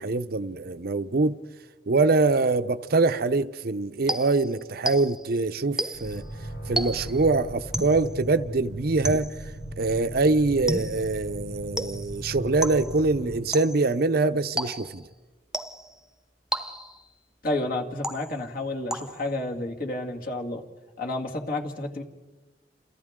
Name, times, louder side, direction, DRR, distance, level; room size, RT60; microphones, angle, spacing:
voice 1, 0.0-1.4 1.9-6.3 6.7-9.3 9.8-15.0, right 3 dB, 60° right, 0.7 m, -24 dB
sound 1, 4.1-5.4 5.8-6.2 6.8-7.3 7.7-8.1 9.0-9.5 10.7-11.1 11.8-12.2 12.6-13.0 13.5-13.9 14.6-15.1 15.5-16.0 16.5-17.1 18.0-18.5 18.9-19.4, right 1 dB, 5° right, 1.0 m, -33 dB
sound 2, 5.9-13.4, right 1 dB, 75° left, 7.2 m, -38 dB
voice 2, 17.4-20.6 21.0-22.0, left 2 dB, 55° left, 2.2 m, -30 dB
29.5 x 28.0 x 3.7 m
head